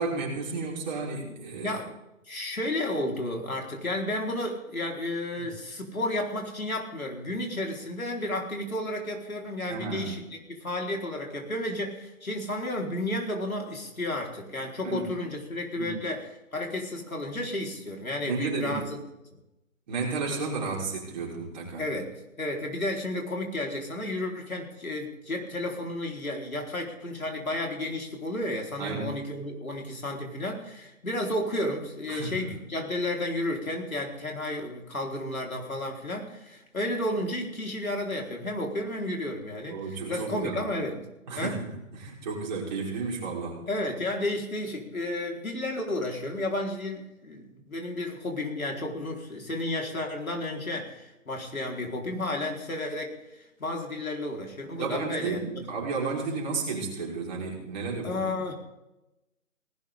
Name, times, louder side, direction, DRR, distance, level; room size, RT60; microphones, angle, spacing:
voice 1, 0.0-1.8 5.4-5.5 9.7-10.1 14.8-15.1 15.8-16.0 18.2-18.9 19.9-21.9 28.8-29.2 32.1-32.5 39.7-40.7 41.3-43.7 54.8-58.3, right 4 dB, 30° right, -3 dB, 5.3 m, -33 dB
voice 2, 2.3-16.2 16.5-19.0 21.8-22.1 22.4-41.0 41.3-41.6 43.7-55.5 58.0-58.5, left 1 dB, 80° left, 0 dB, 4.8 m, -32 dB
19.0 x 17.0 x 3.9 m, 0.94 s
figure-of-eight pair, 155°, 41 cm